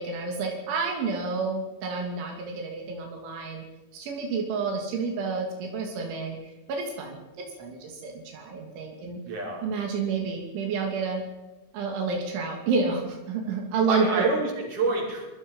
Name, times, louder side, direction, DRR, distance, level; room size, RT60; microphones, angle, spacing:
voice 1, 0.0-3.6 3.9-9.2 9.6-11.2 11.7-14.3, right 4 dB, 85° right, 1 dB, 5.2 m, -29 dB
voice 2, 9.2-9.6 13.9-15.3, right 3 dB, 45° right, -2 dB, 7.5 m, -27 dB
26.0 x 22.5 x 5.6 m, 1.1 s
omnidirectional pair, 5.3 m